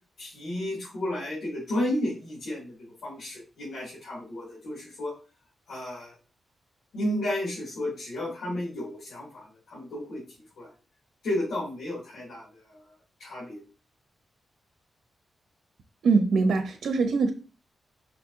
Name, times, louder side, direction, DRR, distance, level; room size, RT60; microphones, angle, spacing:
voice 1, 0.2-5.1 5.7-6.1 6.9-10.2 10.6-10.7 11.2-12.8 13.2-13.6, left 1 dB, 80° left, -7 dB, 3.3 m, -32 dB
voice 2, 16.0-17.3, right 4 dB, 85° right, 6 dB, 0.9 m, -23 dB
6.2 x 5.9 x 2.9 m, 0.35 s
wide cardioid pair, 175°, 0 cm